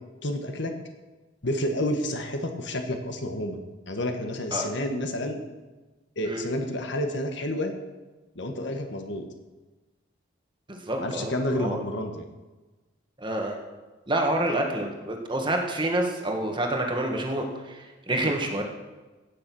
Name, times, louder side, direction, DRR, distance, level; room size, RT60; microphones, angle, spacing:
voice 1, 0.2-0.7 1.4-3.6 3.9-5.4 6.2-7.8 8.3-9.3 11.0-12.3 18.2-18.3, left 1 dB, 65° left, 5 dB, 1.4 m, -29 dB
voice 2, 10.7-11.8 13.2-13.6 14.1-18.6, right 1 dB, 25° right, 2 dB, 1.7 m, -28 dB
16.5 x 6.7 x 6.2 m, 1.2 s
head